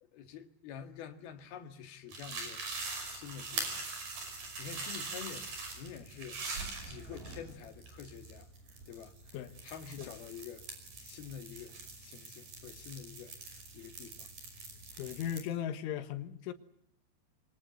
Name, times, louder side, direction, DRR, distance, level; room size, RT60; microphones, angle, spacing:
voice 1, 0.0-2.6 3.1-3.8 4.2-6.4 6.8-8.5 8.9-9.4 9.6-10.7 11.0-14.3, left 8 dB, 60° left, 3.4 m, -48 dB
sound 1, 2.1-15.4, right 3 dB, 45° right, 7.1 m, -43 dB
voice 2, 15.0-16.5, left 10 dB, 80° left, 3.9 m, -37 dB
27.0 x 24.5 x 7.8 m
omnidirectional pair, 5.5 m